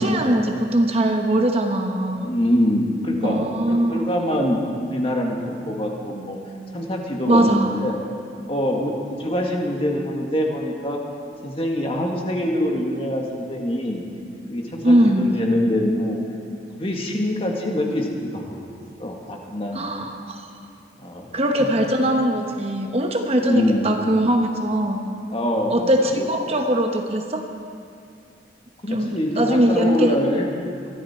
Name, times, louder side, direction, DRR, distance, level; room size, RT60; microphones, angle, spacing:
voice 1, 0.0-2.3 3.2-4.1 7.3-7.8 14.8-15.4 19.7-20.4 21.3-25.1 25.7-27.5 28.9-30.2, right 1 dB, 35° right, 4 dB, 1.0 m, -21 dB
voice 2, 2.2-3.4 3.7-6.4 6.7-8.0 8.5-8.9 9.2-11.0 11.4-14.0 14.5-16.2 16.8-18.6 19.0-20.1 21.0-21.3 21.6-21.7 23.4-23.9 25.3-25.9 26.2-26.3 28.8-30.5, left 1 dB, 30° left, 0 dB, 1.9 m, -24 dB
22.5 x 14.5 x 4.4 m, 2.5 s
head